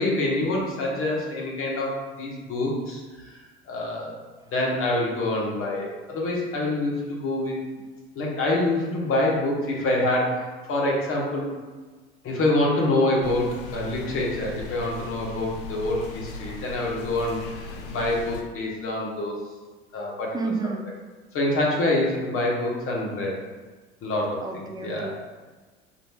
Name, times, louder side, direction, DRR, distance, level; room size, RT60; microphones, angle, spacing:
voice 1, 0.0-3.4 3.7-4.1 4.5-7.6 8.1-11.5 12.2-19.3 19.9-20.5 21.3-23.4 24.0-25.1, left 1 dB, 40° left, -3 dB, 1.3 m, -26 dB
sound 1, 13.2-18.4, left 3 dB, 60° left, 0.7 m, -38 dB
voice 2, 20.3-20.9 24.4-25.1, right 4 dB, 10° right, 3 dB, 0.4 m, -30 dB
4.9 x 3.3 x 2.3 m, 1.3 s
hypercardioid pair, 75°, 33 cm